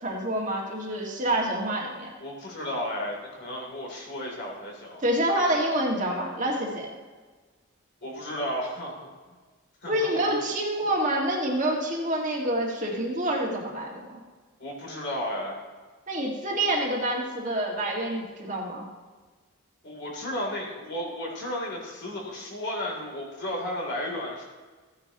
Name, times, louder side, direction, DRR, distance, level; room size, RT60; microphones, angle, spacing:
voice 1, 0.0-2.1 5.0-6.9 9.9-14.2 16.1-18.9, right 1 dB, 40° right, -1 dB, 1.8 m, -27 dB
voice 2, 2.2-5.0 8.0-9.1 9.8-10.4 14.6-15.6 19.8-24.4, left 1 dB, 55° left, -1 dB, 3.1 m, -33 dB
15.0 x 9.5 x 3.0 m, 1.4 s
head